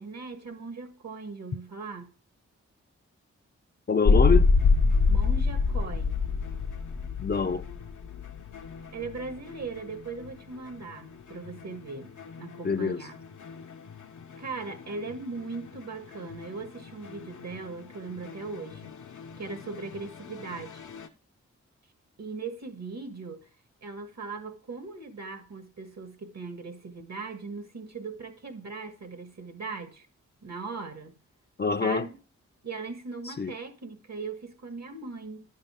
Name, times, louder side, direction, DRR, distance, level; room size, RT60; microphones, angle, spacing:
voice 1, 0.0-2.1 5.1-6.2 8.9-13.1 14.4-19.0 19.4-20.9 22.2-23.5 23.8-30.1 30.4-31.2 31.8-32.2 32.6-35.4, right 4 dB, 60° right, 1.7 m, -39 dB
voice 2, 3.9-4.5 7.2-7.6 12.6-13.0 31.6-32.1 33.3-33.5, left 5 dB, 35° left, 0.5 m, -25 dB
sound 1, 4.0-21.1, left 4 dB, 75° left, 0.9 m, -29 dB
10.5 x 6.7 x 3.6 m
cardioid pair, 45°, 30 cm